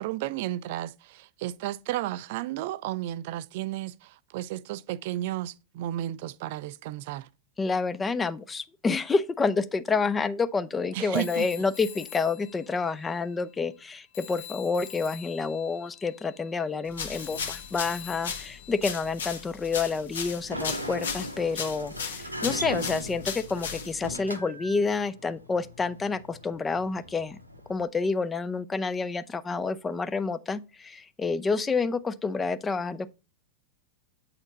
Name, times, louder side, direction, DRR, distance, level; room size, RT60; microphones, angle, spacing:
voice 1, 0.0-7.3 10.9-11.5, right 14 dB, 50° right, 0.4 m, -33 dB
voice 2, 7.6-27.4 27.7-33.1, left 4 dB, 15° left, 0.4 m, -29 dB
Telephone, 11.1-13.9 14.1-19.4, left 13 dB, 50° left, 0.7 m, -46 dB
sound 1, 16.9-24.2, left 6 dB, 65° left, 1.2 m, -36 dB
Sliding door, 20.3-27.8, equal, 90° right, 0.8 m, -39 dB
7.9 x 4.3 x 3.9 m
figure-of-eight pair, 90°, 0 cm